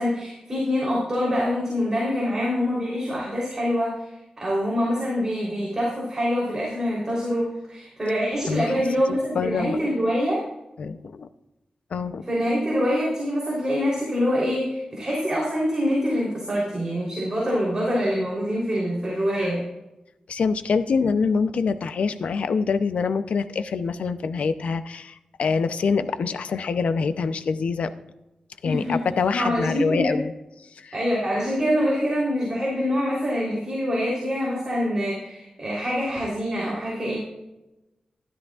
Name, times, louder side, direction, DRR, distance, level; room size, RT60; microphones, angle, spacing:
voice 1, 0.0-4.1 4.4-10.4 12.3-19.6 28.6-29.0 29.3-30.1 30.9-37.2, equal, 30° right, -5 dB, 3.6 m, -25 dB
voice 2, 8.5-8.8 9.1-9.8 10.8-11.3 11.9-12.2 20.3-27.9 28.6-30.3 30.6-30.9, left 5 dB, 80° left, 11 dB, 0.6 m, -25 dB
13.0 x 12.5 x 2.4 m, 0.97 s
wide cardioid pair, 125°, 2 cm